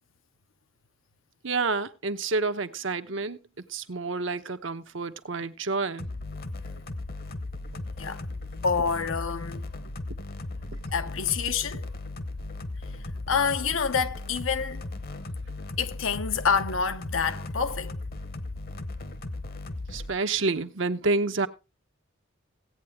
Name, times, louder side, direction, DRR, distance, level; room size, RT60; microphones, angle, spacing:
voice 1, 1.4-3.4 3.7-6.1 19.9-21.5, right 3 dB, 65° right, 0.9 m, -28 dB
sound 1, 6.0-20.1, left 2 dB, 45° left, 1.1 m, -36 dB
voice 2, 8.6-9.6 10.9-11.9 13.3-14.9 15.8-18.0, left 6 dB, 75° left, 0.9 m, -27 dB
16.5 x 8.8 x 3.5 m
head